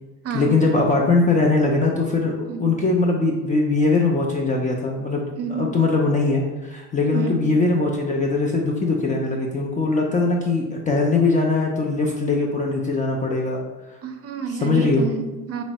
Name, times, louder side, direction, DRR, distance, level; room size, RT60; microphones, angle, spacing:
voice 1, 0.3-13.6 14.6-15.1, left 3 dB, 20° left, -1 dB, 0.4 m, -21 dB
voice 2, 5.3-5.8 7.1-7.3 14.0-15.6, right 4 dB, 40° right, 6 dB, 0.5 m, -29 dB
3.3 x 2.0 x 4.0 m, 1.1 s
supercardioid pair, 95°, 37 cm